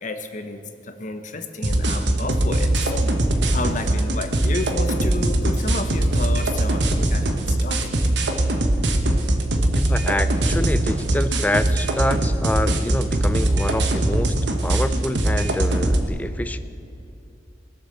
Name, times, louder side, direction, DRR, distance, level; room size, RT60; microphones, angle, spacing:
voice 1, 0.0-3.1 3.5-7.9 8.8-9.0, left 2 dB, 45° left, 7 dB, 1.0 m, -31 dB
sound 1, 1.6-16.0, right 1 dB, 70° right, 1.2 m, -21 dB
voice 2, 9.7-14.4 14.6-16.6, left 1 dB, 10° left, 12 dB, 0.4 m, -26 dB
20.5 x 7.3 x 6.8 m, 2.6 s
head